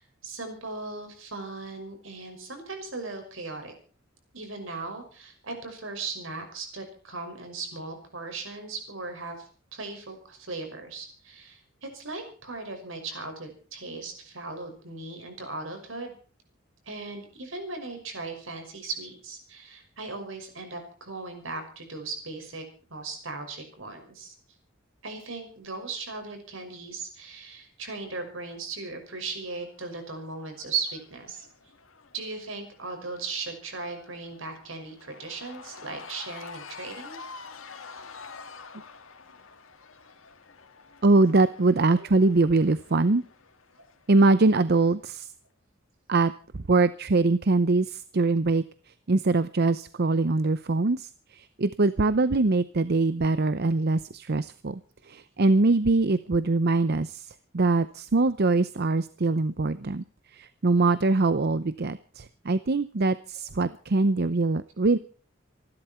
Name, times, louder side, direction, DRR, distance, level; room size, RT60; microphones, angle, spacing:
voice 1, 0.0-3.7 4.3-16.1 16.9-22.6 22.9-24.3 25.0-31.5 32.1-37.2 41.9-42.1, right 3 dB, 75° right, 5 dB, 5.9 m, -37 dB
Cheering / Crowd, 29.5-44.8, left 5 dB, 80° left, 2.0 m, -48 dB
voice 2, 41.0-43.2 44.1-45.3 46.1-54.8 55.1-57.3 57.5-60.0 60.3-65.0, right 3 dB, 55° right, 14 dB, 0.7 m, -23 dB
27.0 x 12.0 x 4.4 m, 0.40 s
head